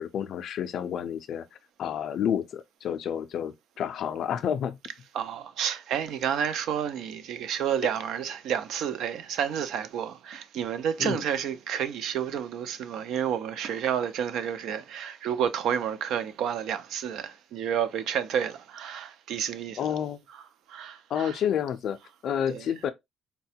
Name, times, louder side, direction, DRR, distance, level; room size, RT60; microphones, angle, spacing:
voice 1, 0.0-1.5 1.8-4.8 11.0-11.2 19.8-20.2 21.1-22.9, left 9 dB, 50° left, 0.4 m, -30 dB
voice 2, 5.1-19.9 20.3-20.4 20.7-21.4 22.5-22.7, right 8 dB, 65° right, 0.4 m, -30 dB
4.0 x 2.2 x 2.7 m
cardioid pair, 180°, 0 cm